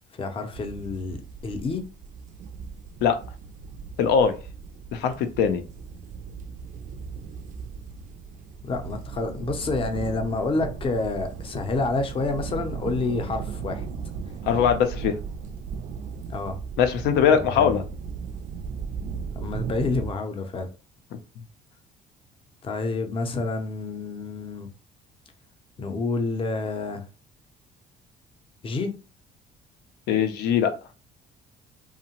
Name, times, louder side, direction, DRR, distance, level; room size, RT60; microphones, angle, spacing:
voice 1, 0.1-1.9 8.6-13.9 16.3-16.6 17.4-17.8 19.3-20.7 22.6-24.7 25.8-27.0 28.6-29.0, left 3 dB, 30° left, 0.5 m, -28 dB
sound 1, 0.5-20.1, right 6 dB, 50° right, 0.4 m, -37 dB
voice 2, 4.0-4.3 4.9-5.6 14.5-15.2 16.8-17.8 30.1-30.7, left 7 dB, 85° left, 0.5 m, -21 dB
2.7 x 2.1 x 2.8 m
cardioid pair, 110°, 17 cm